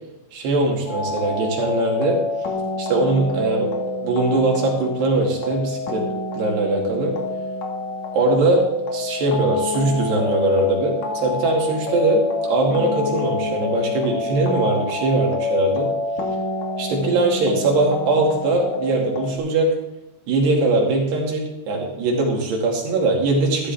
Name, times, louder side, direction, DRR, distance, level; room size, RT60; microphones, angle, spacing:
voice 1, 0.3-2.2 2.8-3.7 4.0-6.0 6.3-7.1 8.1-8.6 8.9-12.2 12.5-15.9 16.8-19.7 20.3-23.7, right 2 dB, 70° right, -1 dB, 4.5 m, -21 dB
sound 1, 0.9-19.4, left 3 dB, 55° left, 2.3 m, -27 dB
14.0 x 13.0 x 3.5 m, 0.92 s
omnidirectional pair, 5.0 m